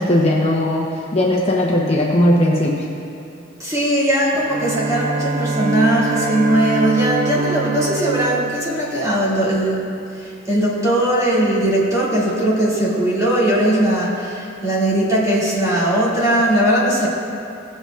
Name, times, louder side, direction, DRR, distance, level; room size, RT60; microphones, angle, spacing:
voice 1, 0.0-2.8, left 1 dB, 35° left, -4 dB, 1.0 m, -18 dB
voice 2, 3.6-9.8 10.5-17.1, right 1 dB, 20° right, -8 dB, 2.5 m, -19 dB
Bowed string instrument, 4.4-9.6, right 4 dB, 40° right, 0.4 m, -25 dB
17.0 x 7.9 x 2.5 m, 2.6 s
head